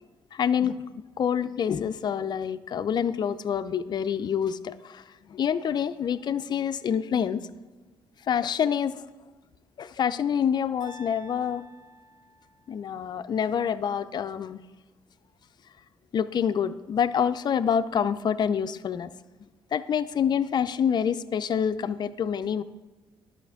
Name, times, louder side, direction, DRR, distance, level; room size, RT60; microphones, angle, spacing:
voice 1, 0.3-7.4 8.3-8.9 9.8-11.6 12.7-14.6 16.1-19.1 19.7-22.6, left 8 dB, 50° left, 12 dB, 0.4 m, -27 dB
sound 1, 10.8-12.9, left 1 dB, 50° right, 2.0 m, -50 dB
11.0 x 5.8 x 3.5 m, 1.2 s
cardioid pair, 80°, 10 cm